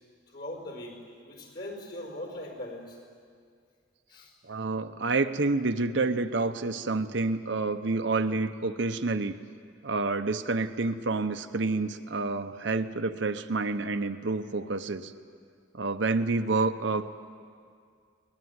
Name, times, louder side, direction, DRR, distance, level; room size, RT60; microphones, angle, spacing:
voice 1, 0.3-3.0 4.1-4.3 15.9-16.1, left 1 dB, 50° left, 3 dB, 4.9 m, -40 dB
voice 2, 4.4-9.3 9.8-15.1 15.7-17.0, right 3 dB, 65° right, 8 dB, 0.9 m, -28 dB
22.5 x 19.5 x 9.6 m, 2.2 s
head